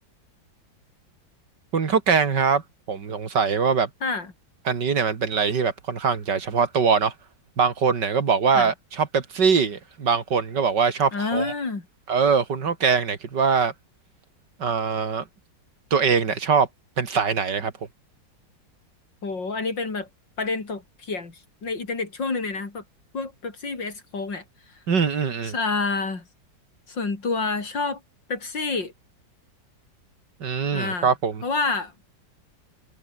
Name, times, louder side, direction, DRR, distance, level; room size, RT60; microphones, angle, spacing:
voice 1, 1.7-2.6 2.9-3.9 4.7-7.1 7.6-11.5 12.1-13.7 14.6-15.2 15.9-16.7 17.0-17.7 24.9-25.5 30.4-31.4, right 6 dB, 65° right, 2.7 m, -22 dB
voice 2, 4.0-4.3 8.5-8.7 11.1-11.8 19.2-20.1 20.4-22.8 23.1-24.4 25.4-26.3 26.9-28.0 28.3-28.9 30.7-31.1 31.4-31.9, left 3 dB, 70° left, 4.7 m, -28 dB
omnidirectional pair, 2.0 m